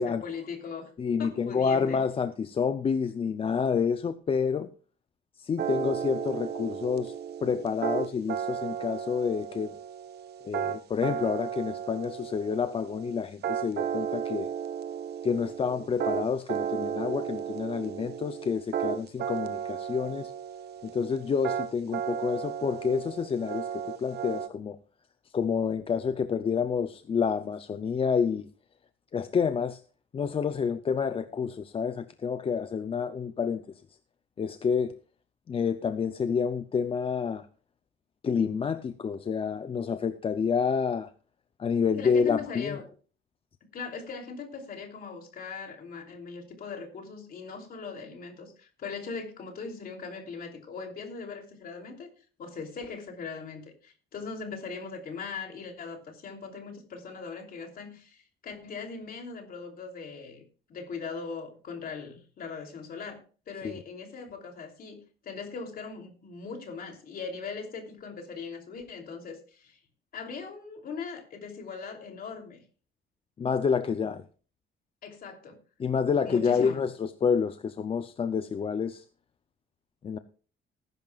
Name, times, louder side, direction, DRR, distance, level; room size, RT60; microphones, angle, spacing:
voice 1, 0.0-0.9 1.2-2.0 42.0-42.9 43.7-52.1 52.4-60.4 60.7-69.8 70.1-72.6 75.0-75.6 76.2-76.8, left 5 dB, 50° left, 3.1 m, -40 dB
voice 2, 1.0-4.7 5.4-7.1 7.4-9.7 10.4-14.5 15.2-20.3 20.8-24.8 25.3-28.5 29.1-29.8 30.1-33.8 34.4-35.0 35.5-37.5 38.2-41.1 41.6-42.8 63.6-63.8 73.4-74.2 75.8-79.0 80.0-80.2, left 6 dB, 30° left, 0.5 m, -28 dB
sound 1, 5.6-24.5, right 8 dB, 55° right, 0.9 m, -34 dB
19.5 x 10.5 x 2.4 m
cardioid pair, 155°, 20 cm